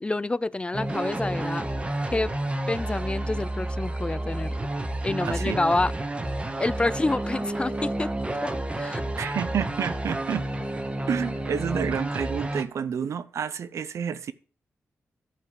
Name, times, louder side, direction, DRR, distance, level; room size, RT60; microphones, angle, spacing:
voice 1, 0.0-1.7 2.1-2.3 2.7-4.5 5.0-5.9 6.6-8.1 8.4-9.0, left 2 dB, 20° left, 0.4 m, -28 dB
sound 1, 0.7-12.6, right 1 dB, 20° right, 1.3 m, -30 dB
voice 2, 5.2-5.6 9.2-10.5 11.1-14.3, right 7 dB, 80° right, 0.7 m, -29 dB
11.5 x 4.8 x 7.4 m
cardioid pair, 80°, 5 cm